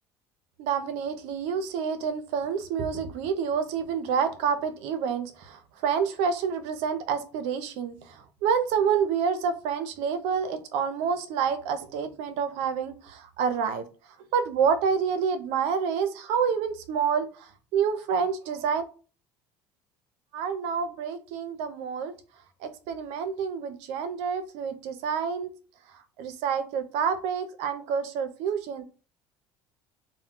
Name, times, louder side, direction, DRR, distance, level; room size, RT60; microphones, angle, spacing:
voice 1, 0.6-13.9 14.3-18.8 20.3-22.1 22.6-25.5 26.2-28.8, right 6 dB, 75° right, 10 dB, 0.5 m, -28 dB
2.2 x 2.1 x 3.6 m, 0.36 s
supercardioid pair, 95°, 11 cm